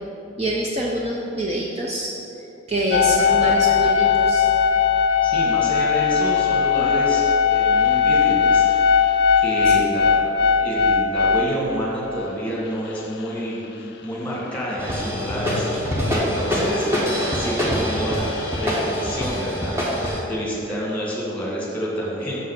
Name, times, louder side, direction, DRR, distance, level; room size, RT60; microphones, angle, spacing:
voice 1, 0.4-2.1 2.7-4.5 9.7-9.8, right 1 dB, 30° right, -2 dB, 0.6 m, -25 dB
sound 1, 2.9-12.3 13.0-13.1 13.3-13.4 14.9-17.7 18.0-19.4, left 6 dB, 55° left, 0.4 m, -20 dB
voice 2, 5.2-8.7 9.4-15.7 16.1-16.9 17.3-22.4, equal, 5° left, -6 dB, 1.9 m, -29 dB
sound 2, 14.8-20.2, equal, 15° right, 1.1 m, -24 dB
6.8 x 5.5 x 6.6 m, 2.9 s
head